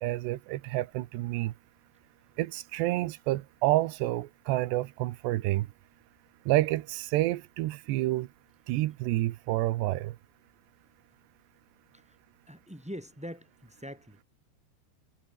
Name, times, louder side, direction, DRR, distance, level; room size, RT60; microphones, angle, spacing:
voice 1, 0.0-1.5 2.4-5.7 6.5-8.3 8.7-10.2, right 17 dB, 80° right, 3.1 m, -29 dB
voice 2, 12.5-14.2, equal, 5° right, 1.5 m, -43 dB
omnidirectional pair, 5.0 m